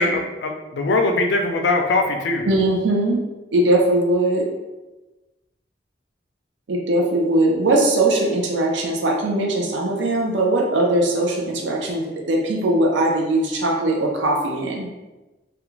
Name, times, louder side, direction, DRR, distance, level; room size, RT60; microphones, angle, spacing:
voice 1, 0.0-2.4, left 2 dB, 75° left, 3 dB, 0.4 m, -21 dB
voice 2, 2.4-3.2 3.5-4.5 6.7-14.9, right 1 dB, 90° right, -1 dB, 0.5 m, -20 dB
2.4 x 2.3 x 3.0 m, 1.1 s
head